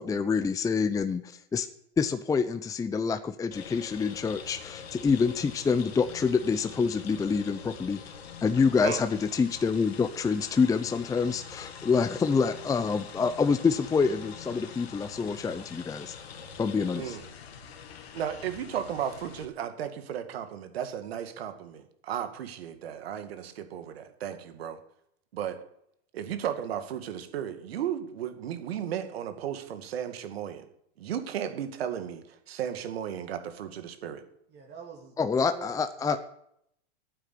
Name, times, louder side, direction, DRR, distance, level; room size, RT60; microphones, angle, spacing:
voice 1, 0.0-1.7 2.0-8.0 8.4-16.1 16.6-17.2 35.2-36.2, left 5 dB, 10° left, 10 dB, 0.7 m, -27 dB
sound 1, 3.5-19.4, left 7 dB, 80° left, 2.3 m, -45 dB
voice 2, 16.9-17.3 18.1-24.8 25.3-25.6 26.1-30.7 31.0-34.2, right 9 dB, 75° right, 9 dB, 2.2 m, -35 dB
voice 3, 34.5-35.1 35.4-36.2, right 6 dB, 35° right, 0 dB, 2.9 m, -45 dB
12.5 x 9.2 x 8.5 m, 0.71 s
hypercardioid pair, 120°, 31 cm